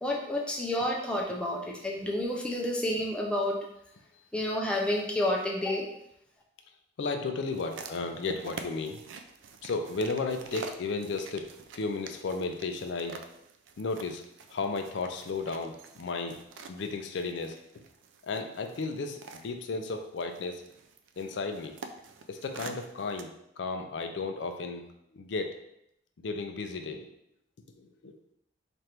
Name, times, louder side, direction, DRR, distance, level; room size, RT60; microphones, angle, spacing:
voice 1, 0.0-3.6 4.3-5.9, left 1 dB, 5° left, -2 dB, 0.4 m, -30 dB
voice 2, 7.0-9.0 9.6-11.5 11.7-13.2 13.8-14.2 14.5-16.4 16.7-17.6 18.3-20.6 21.2-21.7 22.3-23.3 23.6-24.9 25.1-25.6 26.2-27.1 27.8-28.1, left 3 dB, 75° left, 6 dB, 0.4 m, -34 dB
sound 1, 7.5-23.2, right 4 dB, 85° right, 0.4 m, -47 dB
3.3 x 2.5 x 4.3 m, 0.78 s
head